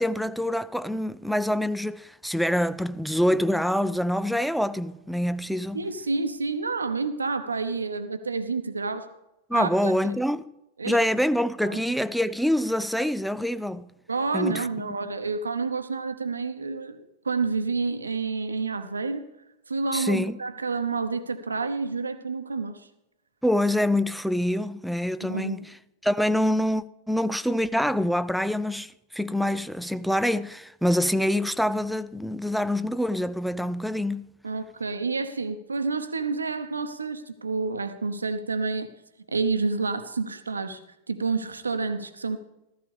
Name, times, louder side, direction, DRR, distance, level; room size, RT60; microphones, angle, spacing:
voice 1, 0.0-5.8 9.5-10.5 10.8-13.9 14.3-14.9 19.9-20.4 23.4-25.7 26.0-34.2, left 1 dB, ahead, 0.5 m, -25 dB
voice 2, 5.7-9.1 9.5-9.9 10.8-11.0 11.6-11.8 14.1-19.2 19.7-22.8 25.2-25.6 34.4-38.9 39.3-40.8 41.1-42.4, right 4 dB, 75° right, 1.0 m, -29 dB
14.5 x 14.5 x 3.5 m
figure-of-eight pair, 90°, 0 cm